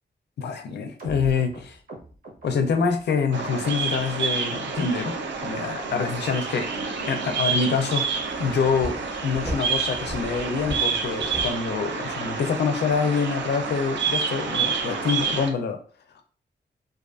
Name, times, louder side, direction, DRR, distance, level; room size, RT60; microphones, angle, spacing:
voice 1, 0.4-1.8 2.4-6.7 7.1-15.8, left 5 dB, 65° left, 7 dB, 0.4 m, -26 dB
sound 1, 1.0-4.2 4.5-5.1 5.4-6.0 6.3-6.4 6.6-6.9 7.2-7.3 7.5-7.7 8.1-8.2 8.4-8.6 8.9-9.0 9.3-9.5 9.8-9.9 10.2-10.4 10.7-10.8, right 1 dB, 50° right, 1.0 m, -43 dB
Bird vocalization bird call bird song, 3.3-15.5, right 5 dB, 80° right, 0.5 m, -28 dB
sound 2, 8.1-12.2, equal, 10° right, 0.6 m, -37 dB
2.4 x 2.4 x 2.4 m, 0.41 s
wide cardioid pair, 175°, 18 cm